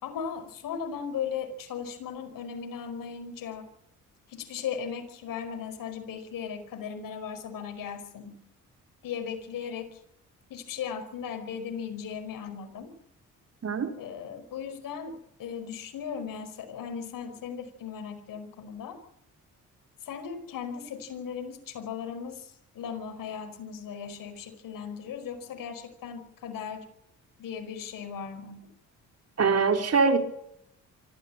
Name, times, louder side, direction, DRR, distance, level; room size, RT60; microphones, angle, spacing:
voice 1, 0.0-3.7 4.3-8.4 9.0-10.0 10.5-12.9 14.0-19.0 20.0-26.9 27.4-28.7, left 7 dB, 75° left, 6 dB, 5.2 m, -37 dB
voice 2, 29.4-30.2, right 4 dB, 50° right, 6 dB, 4.2 m, -23 dB
25.0 x 14.5 x 8.9 m, 0.74 s
supercardioid pair, 70°, 33 cm